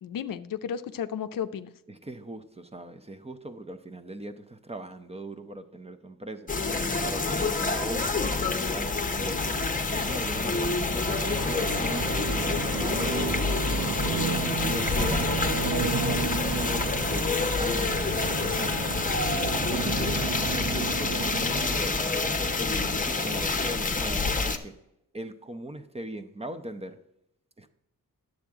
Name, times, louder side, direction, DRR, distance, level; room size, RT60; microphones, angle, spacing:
voice 1, 0.0-1.7, left 8 dB, 75° left, 11 dB, 0.6 m, -33 dB
voice 2, 1.9-6.5 7.0-14.1 14.6-18.8 19.2-20.0 20.5-24.7 25.1-27.0 27.6-27.7, right 1 dB, 20° right, 9 dB, 0.7 m, -40 dB
sound 1, 6.5-24.6, left 3 dB, 25° left, 0.9 m, -27 dB
sound 2, 11.0-21.7, right 6 dB, 65° right, 0.9 m, -33 dB
10.0 x 7.7 x 3.6 m, 0.82 s
wide cardioid pair, 100°, 34 cm